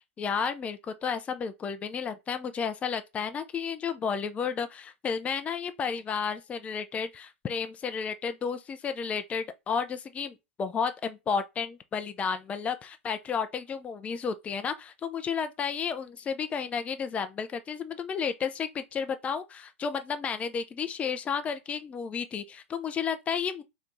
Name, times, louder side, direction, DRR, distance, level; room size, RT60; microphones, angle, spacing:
voice 1, 0.2-23.6, left 6 dB, 20° left, 0.4 m, -32 dB
3.2 x 2.9 x 3.9 m
hypercardioid pair, 110°, 7 cm